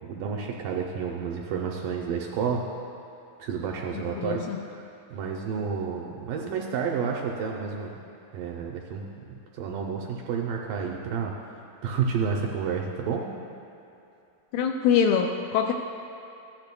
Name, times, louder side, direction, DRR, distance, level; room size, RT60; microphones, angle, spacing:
voice 1, 0.0-2.6 3.4-8.0 8.3-11.5 11.8-13.3, right 6 dB, 80° right, 0 dB, 2.0 m, -30 dB
voice 2, 4.0-4.6 14.5-15.7, left 7 dB, 80° left, 3 dB, 2.1 m, -24 dB
14.5 x 10.5 x 2.3 m, 2.7 s
omnidirectional pair, 4.3 m